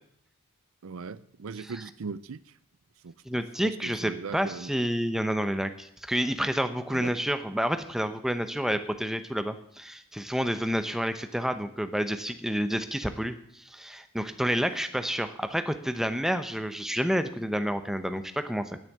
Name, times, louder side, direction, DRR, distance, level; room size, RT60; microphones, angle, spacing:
voice 1, 0.8-2.4 3.0-4.7 6.9-7.2, right 5 dB, 70° right, 15 dB, 0.5 m, -39 dB
voice 2, 3.3-18.8, equal, ahead, 9 dB, 0.8 m, -29 dB
10.0 x 9.0 x 9.1 m, 0.70 s
head